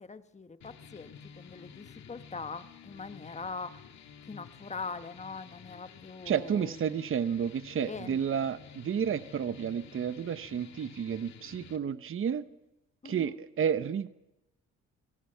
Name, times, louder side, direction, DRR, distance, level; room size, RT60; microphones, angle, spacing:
voice 1, 0.0-3.8 4.3-6.8 7.9-8.2 13.0-13.4, left 4 dB, 25° left, 9 dB, 1.4 m, -42 dB
sound 1, 0.6-11.8, left 7 dB, 65° left, 2.2 m, -52 dB
voice 2, 6.3-12.4 13.0-14.1, right 8 dB, 45° right, 12 dB, 1.0 m, -31 dB
26.0 x 18.0 x 5.7 m, 0.92 s
cardioid pair, 90°, 30 cm